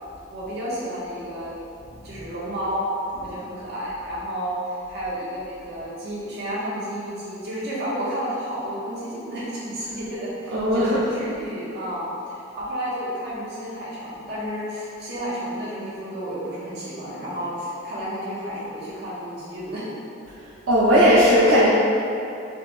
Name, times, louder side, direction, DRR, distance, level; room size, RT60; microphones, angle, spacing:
voice 1, 0.3-1.5 2.0-2.9 3.2-19.9, equal, 60° right, -8 dB, 1.1 m, -31 dB
voice 2, 10.5-11.0 20.7-21.7, equal, 80° right, -9 dB, 0.6 m, -16 dB
4.9 x 2.2 x 3.2 m, 2.7 s
head